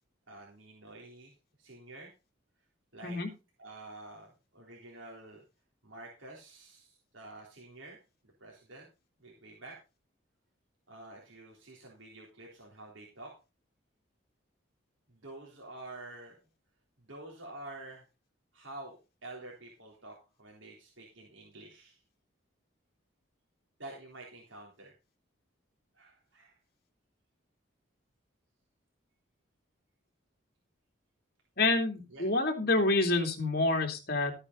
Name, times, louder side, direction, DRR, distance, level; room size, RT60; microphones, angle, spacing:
voice 1, 0.3-1.3 1.6-2.1 2.9-3.2 3.6-5.4 5.8-8.0 8.2-8.9 9.2-9.8 10.9-13.3 15.1-16.3 17.0-18.1 18.5-22.0 23.8-24.9 25.9-26.6 32.1-32.3, right 2 dB, 75° right, -2 dB, 3.6 m, -49 dB
voice 2, 31.6-34.3, left 2 dB, 50° left, 3 dB, 2.9 m, -28 dB
14.0 x 8.8 x 4.0 m, 0.29 s
head